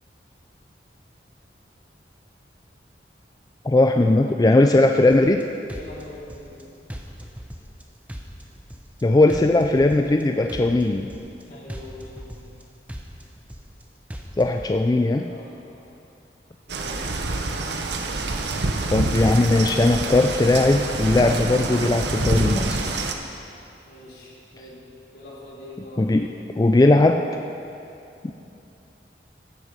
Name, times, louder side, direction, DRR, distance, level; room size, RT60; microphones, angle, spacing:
voice 1, 3.6-5.5 9.0-11.1 14.4-15.3 18.9-22.9 26.0-26.3 26.6-27.3 28.2-28.3, left 2 dB, 20° left, 5 dB, 0.3 m, -18 dB
sound 1, 5.1-5.4 5.7-6.6 6.9-7.8 8.1-9.0 9.3-10.2 10.5-11.4 11.7-12.6 12.9-13.8 14.1-14.7, equal, 10° right, 0.8 m, -38 dB
voice 2, 5.7-6.7 11.5-12.5 15.2-15.9 16.7-17.0 23.8-24.8 25.1-26.2 28.3-28.4, left 1 dB, 70° left, -6 dB, 3.2 m, -43 dB
sound 2, 16.7-23.1, right 2 dB, 80° right, 0.9 m, -26 dB
15.0 x 7.9 x 5.4 m, 2.6 s
head